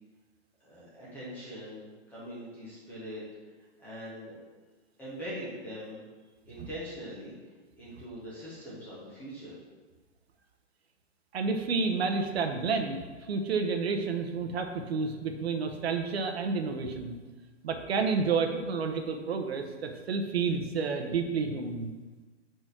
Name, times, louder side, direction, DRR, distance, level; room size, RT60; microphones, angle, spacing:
voice 1, 0.6-3.2 3.8-4.4 5.0-6.0 6.5-7.3 7.7-9.5, equal, 5° left, -9 dB, 0.6 m, -42 dB
voice 2, 11.3-17.1 17.6-21.9, right 4 dB, 60° right, 5 dB, 0.9 m, -30 dB
5.1 x 4.5 x 6.0 m, 1.3 s
hypercardioid pair, 170°, 35 cm